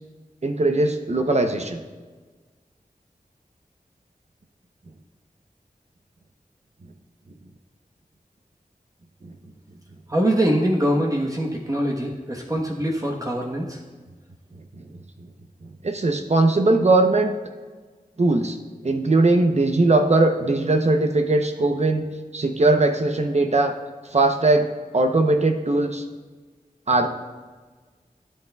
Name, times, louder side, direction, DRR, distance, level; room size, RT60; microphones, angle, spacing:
voice 1, 0.4-1.8 9.2-9.3 14.8-14.9 15.8-17.3 18.2-18.6 18.8-22.0 22.3-23.7 24.1-24.7 24.9-26.0 26.9-27.1, right 2 dB, 50° right, 5 dB, 0.7 m, -19 dB
voice 2, 10.1-13.8, equal, 25° right, -1 dB, 1.1 m, -23 dB
16.0 x 8.2 x 2.3 m, 1.4 s
wide cardioid pair, 60°, 15 cm